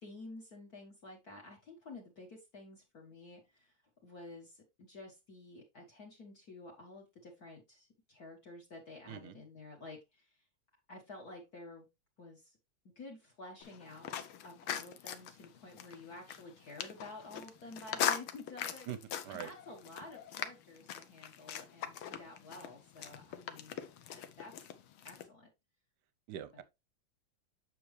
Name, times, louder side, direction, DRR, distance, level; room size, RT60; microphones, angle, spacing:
voice 1, 0.0-3.7 4.0-10.4 10.9-11.9 12.2-12.6 12.9-18.9 19.3-23.8 24.1-24.5 25.0-25.5 26.5-26.6, left 2 dB, 50° left, 1.8 m, -51 dB
sound 1, 13.6-25.3, left 10 dB, 75° left, 1.6 m, -41 dB
voice 2, 26.3-26.6, right 11 dB, 65° right, 1.1 m, -42 dB
7.7 x 5.8 x 3.2 m
omnidirectional pair, 2.4 m